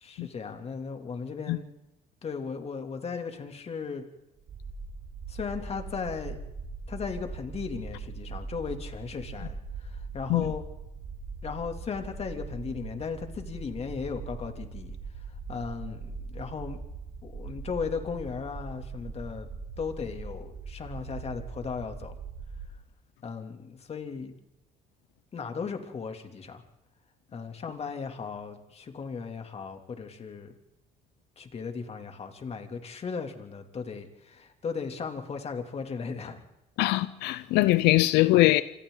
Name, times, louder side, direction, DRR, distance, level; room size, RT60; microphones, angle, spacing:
voice 1, 0.0-1.6 2.2-4.0 5.3-6.4 6.9-10.6 11.4-15.0 15.5-16.8 17.2-19.5 19.8-22.2 23.2-24.3 25.3-26.6 27.3-30.5 31.4-36.4, left 5 dB, 40° left, 2.9 m, -36 dB
sound 1, 4.4-22.7, right 4 dB, 40° right, 5.6 m, -41 dB
voice 2, 36.8-38.6, left 18 dB, 90° left, 0.7 m, -22 dB
27.0 x 26.0 x 4.0 m
cardioid pair, 110°, 17 cm